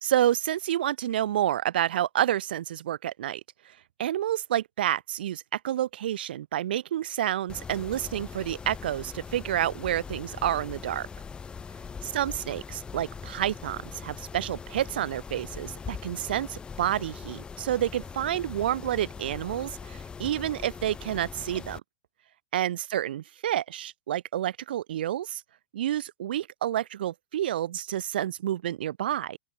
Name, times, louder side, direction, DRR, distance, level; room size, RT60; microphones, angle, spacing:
voice 1, 0.0-3.4 3.6-3.7 4.0-11.1 12.0-21.8 22.5-25.4 25.7-29.4, right 12 dB, 70° right, 1.6 m, -29 dB
Mechanisms, 7.5-21.8, left 6 dB, 15° left, 5.2 m, -41 dB
open air
hypercardioid pair, 115°, 5 cm